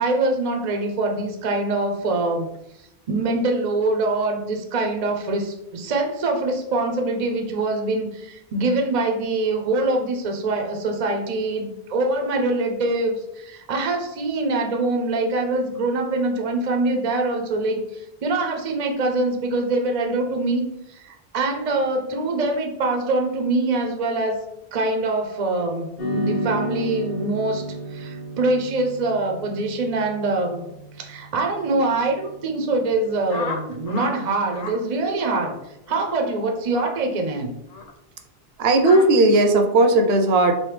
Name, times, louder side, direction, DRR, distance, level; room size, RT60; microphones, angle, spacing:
voice 1, 0.0-2.5 3.1-24.4 24.7-30.6 31.0-35.6 35.9-37.5, right 2 dB, 50° right, 3 dB, 0.6 m, -24 dB
sound 1, 26.0-34.5, equal, 65° left, 1.0 m, -33 dB
sound 2, 33.3-34.2 34.4-34.8 35.2-35.5 35.9-36.1 36.7-37.0 37.7-37.9 38.8-39.0, left 4 dB, 50° left, 0.5 m, -33 dB
voice 2, 38.6-40.5, right 2 dB, 80° right, 4 dB, 0.8 m, -16 dB
3.2 x 2.7 x 3.2 m, 0.82 s
omnidirectional pair, 1.0 m